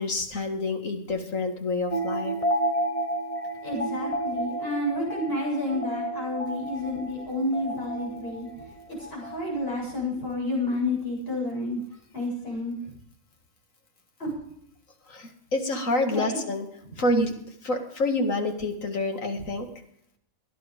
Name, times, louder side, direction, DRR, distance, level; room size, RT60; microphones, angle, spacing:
voice 1, 0.0-2.4 15.1-16.7 17.0-19.7, left 2 dB, 65° left, 4 dB, 2.5 m, -28 dB
sound 1, 1.9-9.8, right 1 dB, 25° left, 1.5 m, -31 dB
voice 2, 3.6-8.5 8.9-11.8 12.1-12.9 14.2-14.3 16.1-16.4, left 1 dB, 40° left, -3 dB, 8.2 m, -30 dB
17.5 x 11.0 x 5.2 m, 0.70 s
omnidirectional pair, 1.5 m